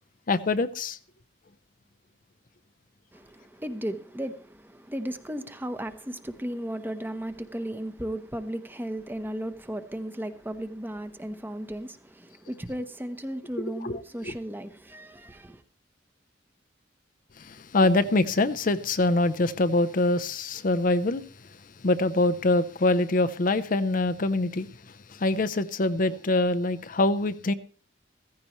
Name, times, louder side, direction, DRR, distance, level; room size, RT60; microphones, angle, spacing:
voice 1, 0.3-1.0 13.6-14.4 17.4-21.3 21.8-27.5, left 2 dB, 45° left, 0.6 m, -25 dB
voice 2, 3.1-15.6, right 1 dB, 10° right, 0.9 m, -35 dB
15.5 x 15.0 x 3.1 m
head